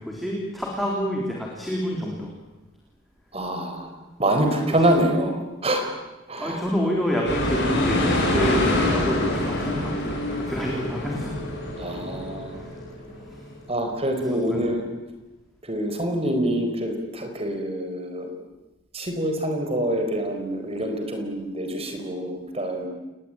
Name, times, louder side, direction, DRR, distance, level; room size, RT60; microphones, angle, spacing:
voice 1, 0.0-2.3 4.9-5.0 6.4-11.5 12.5-12.8 13.2-13.5 14.5-14.7, equal, ahead, -3 dB, 3.9 m, -28 dB
voice 2, 3.3-3.9 4.2-5.8 6.3-6.6 11.8-12.6 13.7-14.9 15.6-18.3 18.9-22.9, right 1 dB, 30° right, 5 dB, 4.5 m, -26 dB
sound 1, 7.2-13.5, left 1 dB, 55° left, 7.6 m, -26 dB
29.0 x 20.0 x 9.0 m, 1.1 s
head